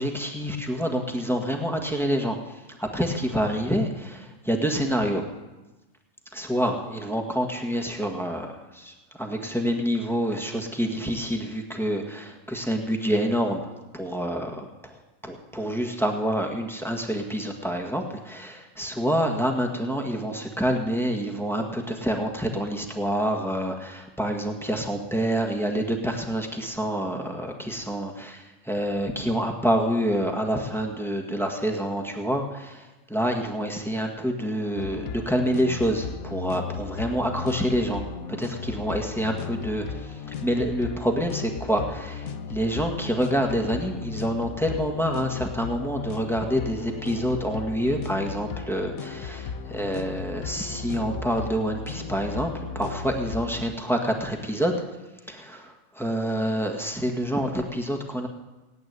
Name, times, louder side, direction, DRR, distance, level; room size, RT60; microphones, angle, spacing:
voice 1, 0.0-5.2 6.3-13.7 13.9-38.0 38.3-54.8 55.3-58.3, equal, ahead, 2 dB, 1.6 m, -27 dB
sound 1, 34.7-53.6, left 6 dB, 90° left, 1.3 m, -36 dB
17.5 x 8.5 x 9.6 m, 1.1 s
omnidirectional pair, 1.4 m